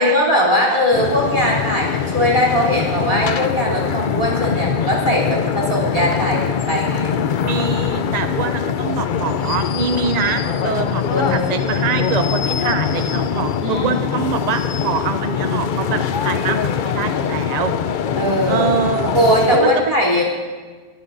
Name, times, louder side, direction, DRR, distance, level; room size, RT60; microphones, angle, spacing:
voice 1, 0.0-7.1 11.1-11.5 13.6-13.9 18.1-18.7 19.1-20.2, equal, 30° right, -3 dB, 3.4 m, -19 dB
sound 1, 0.9-19.6, left 7 dB, 55° left, 0.6 m, -22 dB
voice 2, 7.4-17.7 18.5-19.9, right 6 dB, 55° right, 8 dB, 0.5 m, -24 dB
21.5 x 13.5 x 2.6 m, 1.4 s
omnidirectional pair, 1.1 m